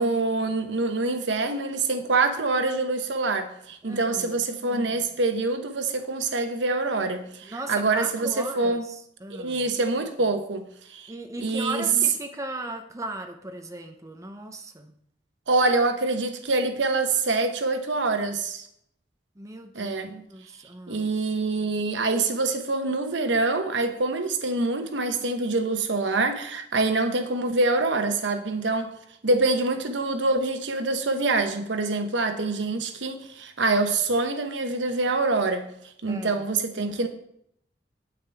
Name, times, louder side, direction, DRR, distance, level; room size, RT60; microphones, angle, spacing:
voice 1, 0.0-8.8 9.4-11.1 11.4-11.8 15.5-18.7 19.7-20.2 20.9-28.9 29.2-35.7 36.0-37.1, right 3 dB, 80° right, 1.0 m, -25 dB
voice 2, 3.8-4.4 7.4-9.7 11.1-14.9 19.4-20.0 20.3-21.1 36.1-36.4, right 2 dB, 15° right, 0.7 m, -37 dB
8.7 x 8.5 x 3.4 m
head